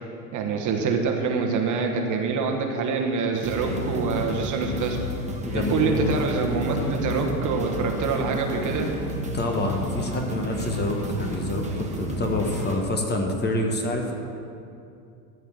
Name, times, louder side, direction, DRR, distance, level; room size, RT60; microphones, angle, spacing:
voice 1, 0.3-5.0 5.5-8.9, right 4 dB, 40° right, 3 dB, 1.3 m, -25 dB
sound 1, 3.3-12.8, equal, 15° right, 1.6 m, -31 dB
voice 2, 5.4-6.2 9.3-14.1, left 1 dB, 20° left, 2 dB, 1.3 m, -27 dB
13.5 x 4.7 x 7.3 m, 2.5 s
hypercardioid pair, 85°, 48 cm